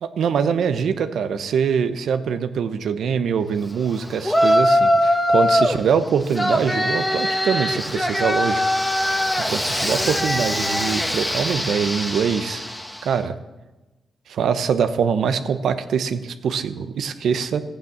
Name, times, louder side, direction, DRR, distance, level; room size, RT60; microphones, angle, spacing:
voice 1, 0.0-8.6 9.0-9.2 9.5-12.6 13.0-13.3 14.3-17.6, right 7 dB, 80° right, 10 dB, 0.9 m, -23 dB
Yell, 4.2-5.8 6.3-13.1, left 1 dB, 10° left, 1.4 m, -21 dB
14.5 x 9.0 x 7.4 m, 1.1 s
cardioid pair, 65°, 0 cm